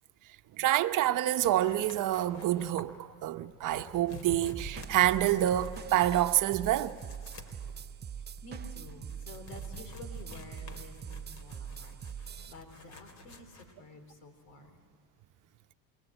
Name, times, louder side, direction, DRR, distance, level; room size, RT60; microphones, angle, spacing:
voice 1, 0.6-7.0, right 13 dB, 55° right, 1.0 m, -27 dB
sound 1, 1.4-13.7, left 4 dB, 45° left, 3.2 m, -50 dB
sound 2, 4.5-12.5, right 8 dB, 25° right, 0.8 m, -43 dB
voice 2, 8.4-14.8, left 2 dB, 85° left, 4.4 m, -51 dB
28.5 x 22.5 x 9.1 m
supercardioid pair, 100°, 38 cm